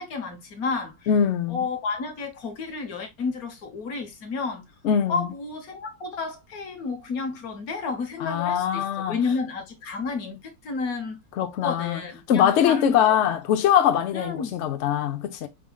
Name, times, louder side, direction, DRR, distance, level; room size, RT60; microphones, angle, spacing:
voice 1, 0.0-1.1 1.5-4.6 5.1-13.0 14.1-14.6, left 4 dB, 55° left, 1.4 m, -31 dB
voice 2, 1.1-1.7 4.8-5.3 8.2-9.2 11.4-12.0 12.3-15.5, left 9 dB, 75° left, 0.6 m, -22 dB
5.0 x 3.6 x 2.2 m
omnidirectional pair, 2.0 m